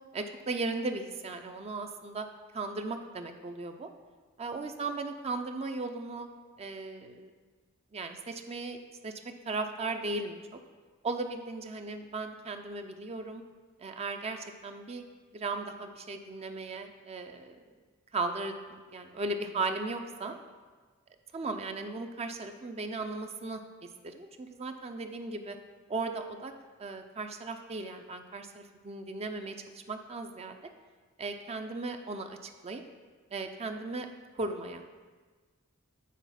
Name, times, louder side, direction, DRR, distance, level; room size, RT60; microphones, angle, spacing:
voice 1, 0.1-2.3 2.5-3.9 4.4-6.3 6.6-7.3 7.9-8.8 9.0-9.1 9.5-10.4 11.0-13.4 13.8-15.0 15.3-17.6 18.1-20.4 21.3-23.6 24.0-25.6 25.9-26.5 26.8-30.6 31.2-32.4 32.6-32.8 33.3-34.1 34.3-34.8, right 3 dB, 30° right, 6 dB, 0.4 m, -36 dB
9.3 x 4.0 x 5.7 m, 1.4 s
head